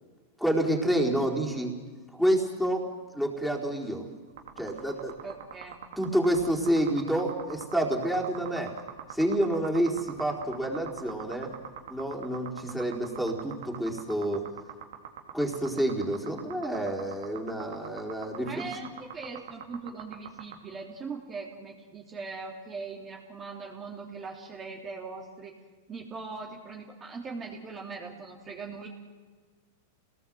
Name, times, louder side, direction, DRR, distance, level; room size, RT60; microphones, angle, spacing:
voice 1, 0.4-1.7 2.1-2.9 3.1-4.1 4.6-5.1 6.0-8.8 9.1-11.5 11.9-14.5 15.3-18.9, right 1 dB, ahead, -2 dB, 4.3 m, -28 dB
sound 1, 4.3-20.6, right 10 dB, 70° right, 3.0 m, -42 dB
voice 2, 5.2-5.8 18.4-25.5 25.9-28.9, right 4 dB, 25° right, -1 dB, 3.3 m, -40 dB
28.0 x 19.0 x 7.8 m, 1.5 s
hypercardioid pair, 105°, 0 cm